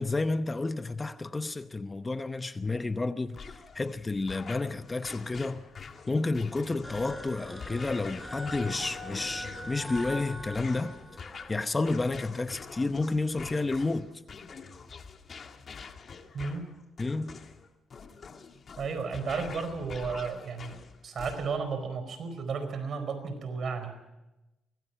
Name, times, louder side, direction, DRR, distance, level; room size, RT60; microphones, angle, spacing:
voice 1, 0.0-5.6 6.1-14.1 17.0-17.4, left 3 dB, 20° left, 0.9 m, -31 dB
sound 1, 3.3-21.7, left 5 dB, 45° left, 2.0 m, -46 dB
sound 2, 6.8-11.7, left 1 dB, 5° left, 4.4 m, -42 dB
voice 2, 16.3-16.7 18.8-24.1, right 5 dB, 55° right, 4.7 m, -33 dB
24.5 x 19.5 x 5.8 m
cardioid pair, 90°, 0 cm